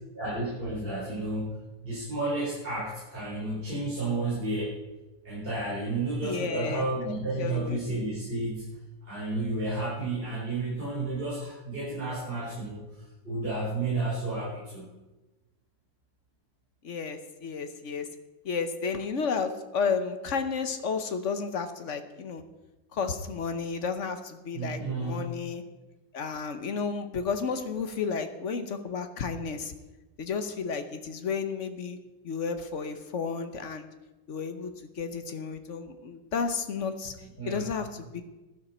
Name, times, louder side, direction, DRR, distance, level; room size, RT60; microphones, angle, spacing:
voice 1, 0.1-1.5 1.8-4.7 5.2-8.7 9.0-14.9 24.5-25.2 37.4-37.7, right 2 dB, 25° right, -9 dB, 4.6 m, -32 dB
voice 2, 6.2-7.8 16.8-18.1 18.4-22.4 22.9-25.6 26.1-29.7 30.2-32.0 32.2-33.9 34.3-34.7 35.0-37.2 37.5-38.2, left 5 dB, 50° left, 8 dB, 1.0 m, -32 dB
15.0 x 11.5 x 4.4 m, 1.1 s
omnidirectional pair, 2.1 m